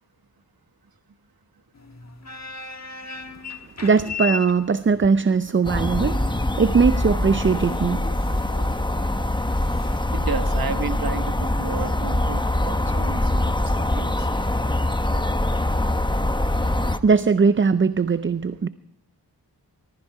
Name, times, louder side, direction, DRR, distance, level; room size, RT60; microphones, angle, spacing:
sound 1, 1.7-10.0, left 5 dB, 40° left, 1.5 m, -37 dB
voice 1, 3.8-8.0 17.0-18.7, right 5 dB, 30° right, 0.5 m, -20 dB
sound 2, 5.6-17.0, left 1 dB, 10° left, 0.9 m, -23 dB
voice 2, 10.1-14.3, right 5 dB, 55° right, 1.3 m, -32 dB
19.5 x 13.5 x 4.8 m
cardioid pair, 50°, 42 cm